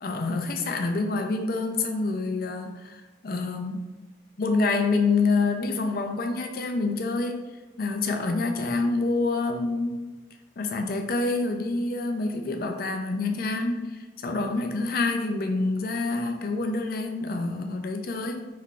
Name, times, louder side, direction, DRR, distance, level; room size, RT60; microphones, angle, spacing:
voice 1, 0.0-3.9 4.4-7.4 7.8-10.1 10.6-18.5, left 3 dB, 50° left, 4 dB, 0.4 m, -27 dB
4.3 x 3.7 x 2.4 m, 1.3 s
head